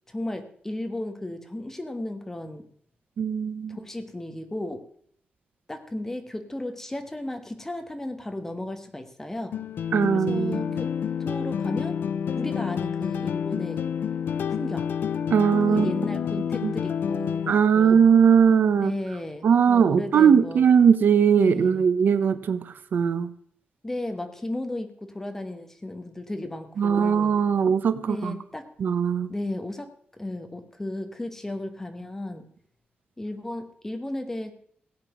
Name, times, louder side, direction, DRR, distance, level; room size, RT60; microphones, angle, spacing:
voice 1, 0.1-2.6 3.7-4.8 5.7-9.5 10.1-10.9 11.2-12.0 12.3-13.8 14.6-14.9 15.7-18.1 18.8-20.7 21.4-21.9 23.8-27.3 28.1-28.6 29.3-29.9 30.2-32.5 33.2-34.5, left 1 dB, 10° left, 7 dB, 1.5 m, -34 dB
voice 2, 3.2-3.8 9.9-10.8 15.3-15.9 16.6-16.7 17.5-18.9 19.4-23.3 26.8-28.3 28.8-29.3, right 7 dB, 65° right, 13 dB, 0.8 m, -20 dB
sound 1, 9.5-17.5, left 8 dB, 70° left, 0.6 m, -29 dB
16.5 x 9.0 x 6.1 m, 0.62 s
wide cardioid pair, 160°, 4 cm